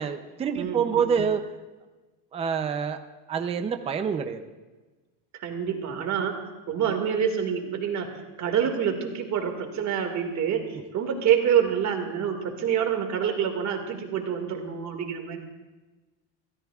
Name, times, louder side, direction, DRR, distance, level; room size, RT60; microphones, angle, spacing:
voice 1, 0.0-1.5 2.3-3.0 3.3-4.4, right 6 dB, 15° right, 7 dB, 0.5 m, -26 dB
voice 2, 0.5-1.2 5.4-6.4 6.7-8.1 8.4-10.7 10.9-15.4, right 8 dB, 35° right, 4 dB, 2.0 m, -27 dB
25.5 x 16.5 x 2.4 m, 1.2 s
cardioid pair, 155°, 47 cm